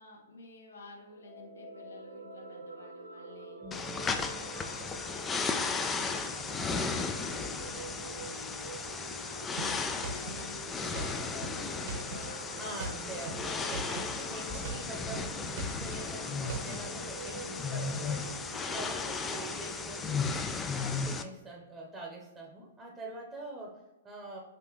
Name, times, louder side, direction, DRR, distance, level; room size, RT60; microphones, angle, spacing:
voice 1, 0.0-3.6 4.1-8.6 9.1-12.9, left 3 dB, 75° left, -2 dB, 1.4 m, -52 dB
sound 1, 1.1-20.4, right 2 dB, 80° right, 0.6 m, -47 dB
voice 2, 3.6-4.0 12.6-24.4, right 1 dB, 10° right, -2 dB, 0.9 m, -45 dB
sound 2, 3.7-21.2, left 4 dB, 15° left, 0.4 m, -35 dB
sound 3, 9.6-12.3 12.6-14.2 14.4-16.8, right 3 dB, 60° right, 0.9 m, -40 dB
5.9 x 2.8 x 3.1 m, 1.1 s
hypercardioid pair, 120°, 0 cm